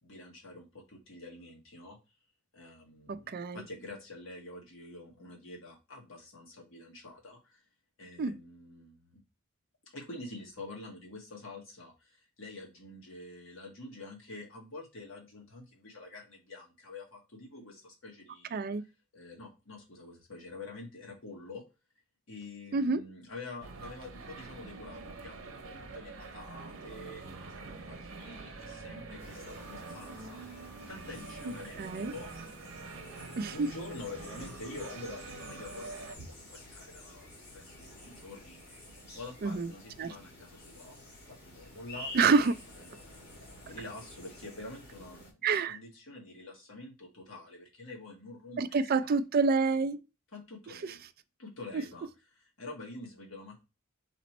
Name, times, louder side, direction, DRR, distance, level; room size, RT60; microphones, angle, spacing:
voice 1, 0.0-2.0 2.5-3.2 3.5-7.6 8.0-9.2 9.9-18.6 19.1-21.6 22.3-25.7 25.9-32.3 32.8-38.8 39.1-41.0 41.3-42.1 42.9-49.1 50.3-51.0 51.4-52.1 52.6-53.6, left 2 dB, 75° left, 1.6 m, -47 dB
voice 2, 3.1-3.6 8.2-8.4 18.5-18.8 22.7-23.0 31.8-32.1 33.4-33.7 39.4-39.7 40.0-40.1 42.1-42.5 45.4-45.8 48.6-50.0 50.8-50.9, right 4 dB, 50° right, 0.4 m, -27 dB
sound 1, 23.6-36.2, right 3 dB, 75° right, 0.8 m, -45 dB
sound 2, 29.2-45.3, left 1 dB, 50° left, 1.6 m, -50 dB
4.1 x 3.1 x 4.2 m
head